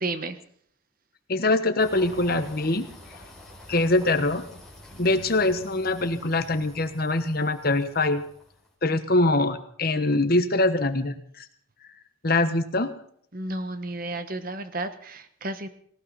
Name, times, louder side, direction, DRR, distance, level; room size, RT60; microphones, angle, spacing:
voice 1, 0.0-0.4 13.3-15.7, right 2 dB, 40° right, 10 dB, 1.1 m, -32 dB
voice 2, 1.3-2.9 3.7-4.4 5.0-8.2 8.8-11.4 12.2-12.9, left 2 dB, 45° left, 10 dB, 1.2 m, -23 dB
sound 1, 1.8-8.7, left 1 dB, ahead, 4.7 m, -47 dB
18.5 x 18.5 x 4.2 m, 0.63 s
head